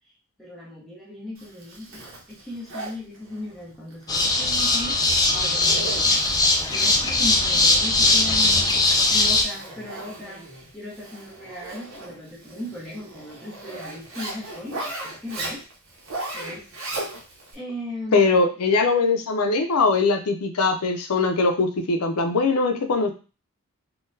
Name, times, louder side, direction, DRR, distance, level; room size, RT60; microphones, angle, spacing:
voice 1, 0.4-2.0 2.3-5.0 5.3-6.4 6.7-15.6 16.3-16.7 17.5-18.5, left 1 dB, ahead, -7 dB, 1.1 m, -37 dB
Zipper (clothing), 1.4-17.5, right 2 dB, 65° right, 0.8 m, -38 dB
sound 1, 4.1-9.4, left 2 dB, 15° left, 0.3 m, -20 dB
voice 2, 18.1-23.1, left 3 dB, 90° left, 6 dB, 0.5 m, -21 dB
3.8 x 2.3 x 2.6 m, 0.34 s
head